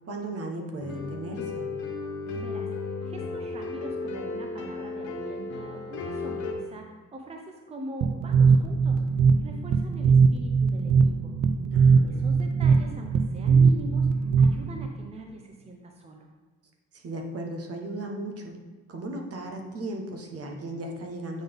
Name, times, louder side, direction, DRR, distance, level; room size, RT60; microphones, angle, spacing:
voice 1, 0.1-1.7 11.7-12.3 16.9-18.5 18.9-21.4, right 1 dB, 50° right, 2 dB, 1.1 m, -36 dB
sound 1, 0.8-6.5, left 3 dB, 75° left, 0.9 m, -34 dB
voice 2, 2.3-9.0 9.4-11.3 12.0-16.3, right 1 dB, 20° right, 2 dB, 0.7 m, -43 dB
sound 2, 8.0-14.9, right 5 dB, 70° right, 0.5 m, -21 dB
8.8 x 3.9 x 3.5 m, 1.3 s
cardioid pair, 90°, 30 cm